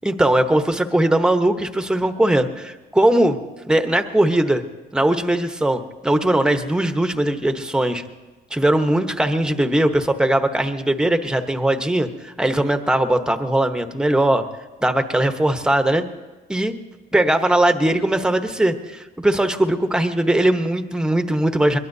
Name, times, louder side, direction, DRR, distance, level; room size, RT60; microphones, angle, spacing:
voice 1, 0.0-3.4 3.7-4.6 4.9-8.0 8.5-14.4 14.8-16.1 16.5-16.8 17.1-21.8, right 1 dB, 5° right, 7 dB, 1.0 m, -19 dB
22.5 x 21.5 x 2.7 m, 1.2 s
cardioid pair, 110°, 17 cm